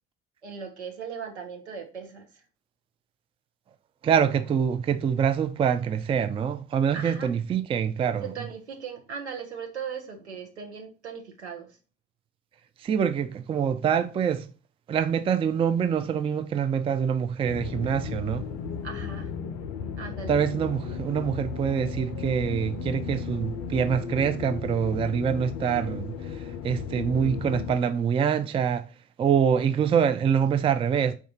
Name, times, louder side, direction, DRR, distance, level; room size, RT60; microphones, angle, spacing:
voice 1, 0.4-2.3 6.9-7.3 8.2-11.7 18.8-19.3 20.0-20.4, right 6 dB, 85° right, 0.7 m, -38 dB
voice 2, 4.0-8.3 12.8-14.5 14.9-18.4 20.3-26.1 26.6-28.9 29.2-31.2, right 7 dB, 20° right, 0.3 m, -25 dB
sound 1, 17.5-27.8, left 7 dB, 65° left, 0.5 m, -35 dB
3.5 x 2.4 x 4.1 m
figure-of-eight pair, 50°, 33 cm